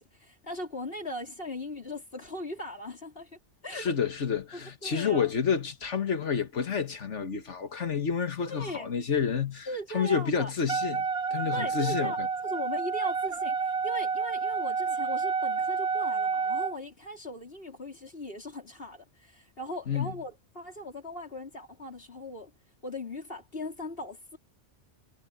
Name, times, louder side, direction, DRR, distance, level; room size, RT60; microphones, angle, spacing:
voice 1, 0.0-3.3 3.6-3.9 4.5-5.3 8.5-8.9 9.7-10.5 11.5-22.5 22.8-24.4, left 1 dB, 55° left, 4.3 m, -39 dB
voice 2, 3.7-9.7 9.9-11.1 11.3-12.3 19.9-20.1, left 6 dB, 80° left, 1.9 m, -29 dB
Wind instrument woodwind instrument, 10.7-16.8, right 5 dB, 40° right, 0.6 m, -29 dB
omnidirectional pair, 1.2 m